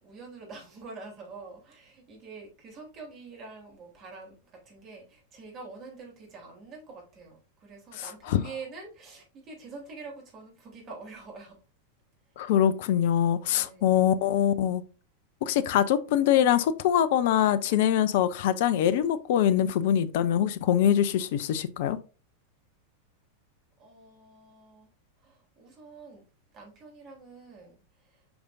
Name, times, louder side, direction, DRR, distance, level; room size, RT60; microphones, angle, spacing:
voice 1, 0.0-11.6 12.4-12.5 13.5-13.9 23.8-24.9 25.2-26.2 26.5-28.2, right 4 dB, 35° right, 3.5 m, -46 dB
voice 2, 12.4-14.8 15.4-22.0, left 10 dB, 50° left, 0.5 m, -23 dB
7.9 x 5.0 x 2.6 m
figure-of-eight pair, 90°, 0 cm